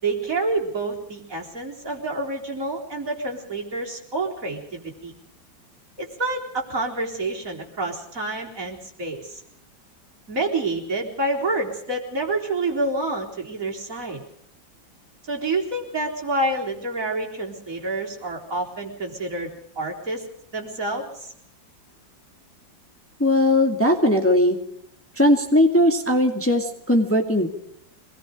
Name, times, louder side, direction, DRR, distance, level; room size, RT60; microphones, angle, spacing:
voice 1, 0.0-5.1 6.0-9.4 10.3-14.2 15.3-20.3 20.5-21.3, right 2 dB, 45° right, -1 dB, 4.4 m, -28 dB
voice 2, 23.2-24.6 25.2-27.5, left 1 dB, 5° left, 2 dB, 2.2 m, -19 dB
26.0 x 20.0 x 5.1 m, 0.73 s
omnidirectional pair, 2.0 m